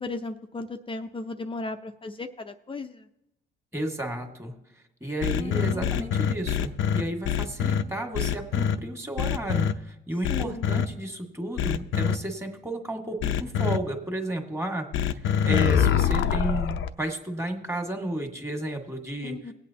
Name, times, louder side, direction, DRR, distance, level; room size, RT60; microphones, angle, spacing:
voice 1, 0.0-3.1 5.3-6.1 10.3-10.7 19.2-19.5, left 3 dB, 25° left, 6 dB, 0.6 m, -36 dB
voice 2, 3.7-4.5 5.0-14.9 15.2-19.5, right 1 dB, 15° right, 4 dB, 1.8 m, -32 dB
sound 1, 5.2-7.8 8.1-8.7 9.2-9.7 10.2-10.9 11.6-12.1 13.2-13.8 14.9-16.9, left 8 dB, 75° left, 0.6 m, -24 dB
19.0 x 8.3 x 2.9 m, 0.88 s
cardioid pair, 90°, 20 cm